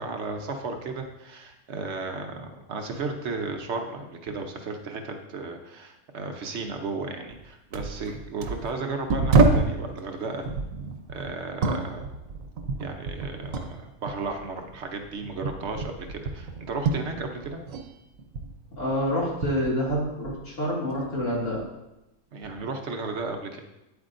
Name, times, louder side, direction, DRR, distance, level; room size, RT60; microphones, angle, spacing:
voice 1, 0.0-10.5 11.1-12.1 12.8-17.6 22.3-23.6, right 3 dB, 60° right, 4 dB, 1.0 m, -34 dB
sound 1, 7.3-7.4 7.7-9.8 10.4-13.8 14.1-17.9 18.1-20.5 20.9-21.6 22.4-22.6, right 3 dB, 85° right, 1.1 m, -28 dB
voice 2, 18.8-21.6, equal, 70° left, -5 dB, 2.6 m, -27 dB
8.9 x 8.1 x 2.5 m, 0.94 s
omnidirectional pair, 1.4 m